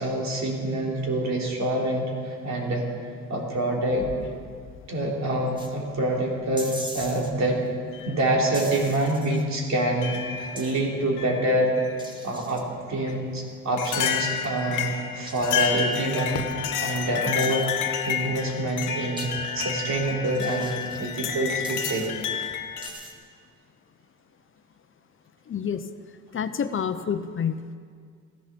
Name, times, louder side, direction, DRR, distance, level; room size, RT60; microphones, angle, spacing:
voice 1, 0.0-2.8 3.3-4.1 4.9-7.6 8.1-11.7 12.2-16.5 16.8-22.1, right 1 dB, 65° right, -1 dB, 3.4 m, -26 dB
sound 1, 3.9-4.8 5.9-6.0 7.0-7.3 7.9-8.1 8.8-8.9 10.0-10.7 11.2-12.0 13.1-13.2 13.8-22.9, left 7 dB, 85° left, 1.3 m, -30 dB
sound 2, 5.6-5.7 6.6-7.3 8.5-9.4 10.5-10.9 12.0-12.6 13.8-14.3 15.3-16.2 17.4-18.1 19.2-19.3 20.4-21.0 21.6-22.1 22.8-23.1, right 1 dB, 15° right, 1.8 m, -41 dB
voice 2, 25.5-25.8 26.3-27.6, left 7 dB, 45° left, 10 dB, 0.7 m, -28 dB
15.0 x 11.5 x 6.9 m, 2.1 s
cardioid pair, 90°, 30 cm